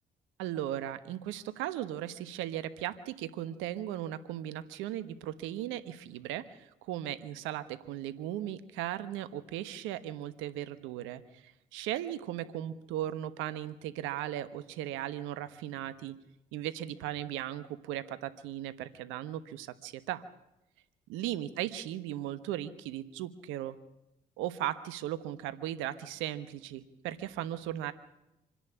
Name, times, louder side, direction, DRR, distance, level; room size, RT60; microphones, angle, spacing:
voice 1, 0.4-16.1 16.5-20.2 21.1-23.8 24.4-27.9, right 12 dB, 90° right, 13 dB, 1.2 m, -37 dB
26.0 x 10.5 x 9.9 m, 0.88 s
supercardioid pair, 60°, 19 cm